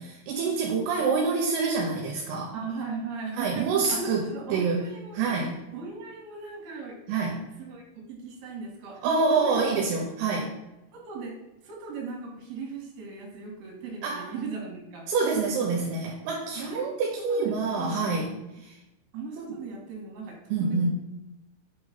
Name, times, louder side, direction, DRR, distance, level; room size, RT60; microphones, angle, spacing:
voice 1, 0.0-2.5 3.3-4.2 4.5-4.8 5.1-5.6 7.1-7.4 9.0-10.5 14.0-14.3 15.1-18.3 18.6-18.8 19.4-19.6 20.5-20.9, right 4 dB, 80° right, -1 dB, 3.2 m, -26 dB
voice 2, 2.5-5.4 5.7-7.0 7.6-7.8 8.1-9.6 10.3-10.4 10.9-11.4 11.6-15.0 16.5-16.9 17.3-17.5 17.8-18.0 19.1-20.9, right 4 dB, 60° right, -3 dB, 3.2 m, -37 dB
8.3 x 3.1 x 3.9 m, 0.97 s
omnidirectional pair, 5.9 m